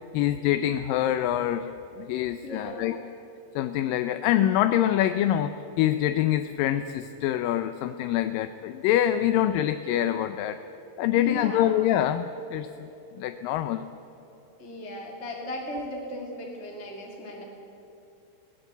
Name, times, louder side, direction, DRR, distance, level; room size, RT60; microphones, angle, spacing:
voice 1, 0.1-1.7 2.0-3.0 3.6-10.6 11.0-12.9 13.2-13.9, left 12 dB, 85° left, 9 dB, 2.4 m, -25 dB
voice 2, 2.4-3.1 11.2-11.8 14.6-17.4, left 1 dB, 20° left, -1 dB, 2.5 m, -37 dB
20.5 x 18.5 x 8.1 m, 3.0 s
omnidirectional pair, 3.9 m